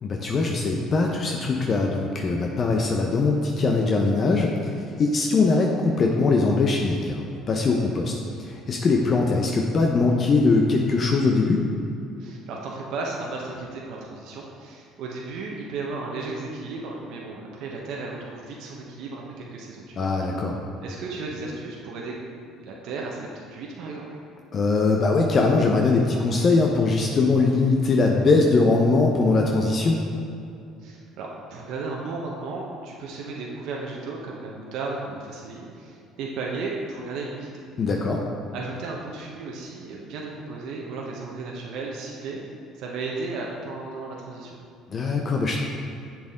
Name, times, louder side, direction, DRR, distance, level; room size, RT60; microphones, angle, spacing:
voice 1, 0.0-4.7 5.0-11.7 20.0-20.6 24.5-30.0 37.8-38.2 44.9-45.6, left 3 dB, 45° left, 1 dB, 0.8 m, -21 dB
voice 2, 12.2-20.2 20.8-22.2 22.5-24.2 30.8-37.6 38.5-44.6, right 3 dB, 65° right, -2 dB, 1.0 m, -34 dB
7.5 x 6.9 x 3.7 m, 2.6 s
hypercardioid pair, 65°, 0 cm